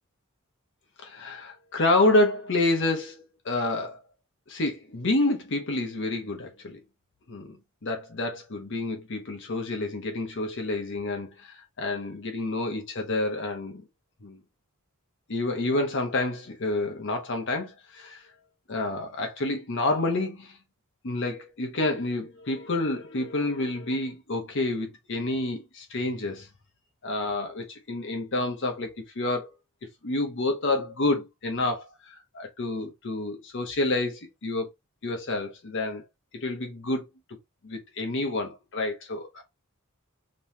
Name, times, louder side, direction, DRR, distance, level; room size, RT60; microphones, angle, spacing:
voice 1, 1.0-4.0 4.5-6.8 7.3-7.6 7.8-13.8 14.2-14.4 15.3-18.2 18.7-20.6 21.0-26.5 27.0-29.5 30.0-34.7 35.0-36.0 36.3-37.0 37.6-39.4, left 2 dB, 60° left, 0.9 m, -28 dB
5.3 x 3.0 x 2.7 m
head